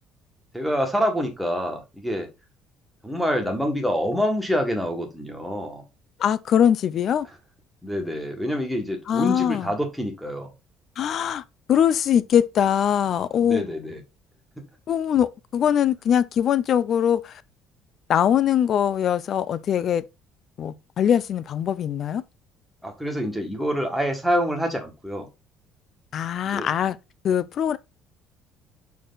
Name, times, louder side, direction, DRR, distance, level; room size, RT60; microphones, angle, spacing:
voice 1, 0.5-2.3 3.0-5.8 7.8-10.5 13.4-14.0 22.8-25.3 26.4-26.7, equal, ahead, 1.5 m, -26 dB
voice 2, 6.2-7.3 9.1-9.7 11.0-13.6 14.9-17.4 18.1-20.0 20.6-22.2 26.1-27.0 27.2-27.8, left 9 dB, 40° left, 0.4 m, -22 dB
6.3 x 4.6 x 3.9 m
cardioid pair, 170°, 0 cm